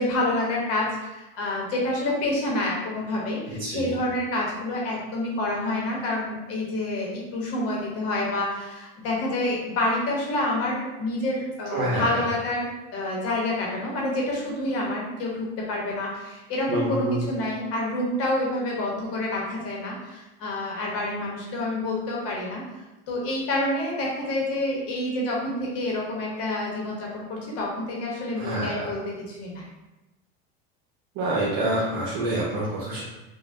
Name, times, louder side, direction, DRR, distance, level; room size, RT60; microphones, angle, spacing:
voice 1, 0.0-22.6 23.1-29.0 29.3-29.6, left 1 dB, 45° left, -2 dB, 0.8 m, -28 dB
voice 2, 3.5-3.9 11.7-12.3 16.7-17.2 28.4-28.9 31.1-33.0, right 1 dB, 60° right, -5 dB, 0.7 m, -27 dB
3.2 x 2.1 x 2.4 m, 1.1 s
supercardioid pair, 115°, 32 cm